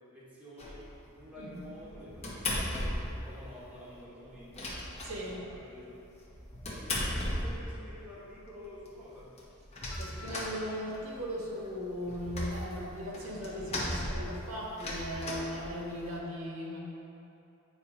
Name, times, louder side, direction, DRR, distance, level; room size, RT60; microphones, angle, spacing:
voice 1, 0.1-0.8 1.1-4.7 5.2-6.0 6.8-9.3, left 1 dB, 5° right, -8 dB, 1.1 m, -49 dB
sound 1, 0.6-1.0 1.5-3.3 3.5-3.6 3.9-4.0 4.3-5.6 6.2-8.0 8.5-8.6 8.9-9.0 9.1-11.2 11.6-16.2, left 1 dB, 30° left, 0.9 m, -36 dB
voice 2, 1.4-1.7 5.0-5.4 10.0-16.8, equal, 80° right, -3 dB, 1.2 m, -38 dB
8.4 x 2.9 x 4.8 m, 2.8 s
head